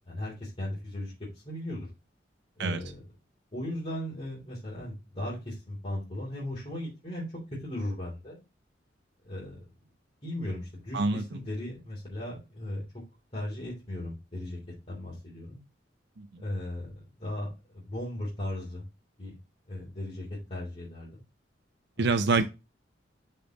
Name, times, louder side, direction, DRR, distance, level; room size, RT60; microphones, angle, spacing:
voice 1, 0.1-1.9 2.6-3.0 3.5-7.2 7.6-8.4 9.2-9.7 10.2-12.8 13.3-14.6 14.9-15.6 16.4-17.5 17.7-18.8 19.2-19.4 19.7-21.2, left 1 dB, 35° left, 3.3 m, -37 dB
voice 2, 10.9-11.2 22.0-22.4, right 3 dB, 65° right, 0.6 m, -25 dB
7.0 x 5.7 x 3.8 m
head